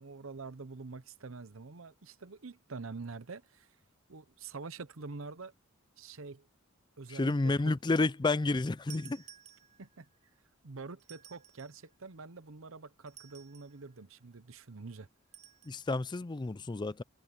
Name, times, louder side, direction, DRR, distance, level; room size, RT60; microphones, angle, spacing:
voice 1, 0.0-3.7 4.1-5.5 6.0-6.5 7.0-7.7 9.8-10.1 10.6-15.1, right 4 dB, 70° right, 0.9 m, -46 dB
voice 2, 7.1-9.2 15.7-17.0, left 3 dB, 20° left, 0.4 m, -30 dB
sound 1, 8.9-10.1 11.0-11.9 13.1-13.8 15.3-15.8, right 10 dB, 35° right, 6.4 m, -54 dB
head